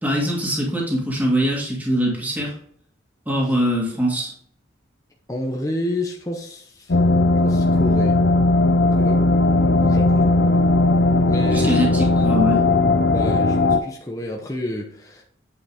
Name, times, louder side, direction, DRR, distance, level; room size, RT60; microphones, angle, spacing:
voice 1, 0.0-2.5 3.3-4.3 11.5-12.6, equal, 10° right, -4 dB, 1.9 m, -22 dB
voice 2, 5.3-7.0 7.3-8.2 8.9-10.6 11.3-11.8 13.1-15.2, left 1 dB, 15° left, 0 dB, 0.8 m, -30 dB
sound 1, 6.9-13.8, left 2 dB, 65° left, 0.6 m, -17 dB
8.6 x 5.2 x 3.5 m, 0.63 s
head